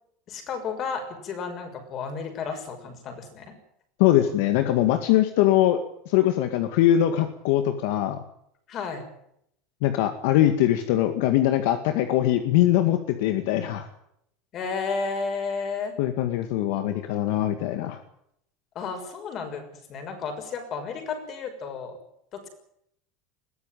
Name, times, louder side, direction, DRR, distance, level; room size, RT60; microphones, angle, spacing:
voice 1, 0.3-3.5 8.7-9.0 14.5-16.0 18.7-19.6 19.9-22.0 22.3-22.5, left 5 dB, 35° left, 6 dB, 6.2 m, -32 dB
voice 2, 4.0-8.2 9.8-13.9 16.0-18.0, left 12 dB, 65° left, 8 dB, 2.0 m, -22 dB
21.5 x 15.5 x 9.2 m, 0.73 s
supercardioid pair, 160°, 0 cm